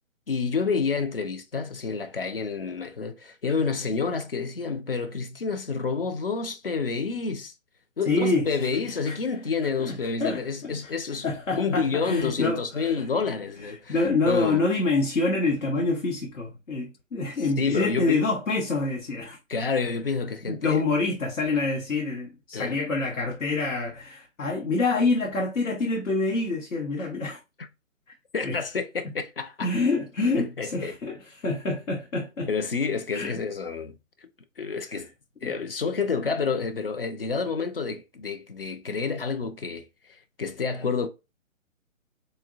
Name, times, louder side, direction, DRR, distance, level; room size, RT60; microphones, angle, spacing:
voice 1, 0.3-7.5 8.0-11.2 11.5-14.6 17.6-18.2 19.5-20.8 22.5-22.8 28.3-29.7 30.4-31.0 32.5-34.3 34.6-35.1 35.4-41.1, left 5 dB, 45° left, 0.4 m, -29 dB
voice 2, 8.1-8.5 9.1-9.2 9.8-10.9 11.2-13.1 13.7-19.4 20.5-27.4 28.4-28.6 29.6-32.5 33.1-33.4 35.4-35.5, left 3 dB, 75° left, 0.8 m, -26 dB
3.8 x 2.1 x 2.3 m
figure-of-eight pair, 135°, 40 cm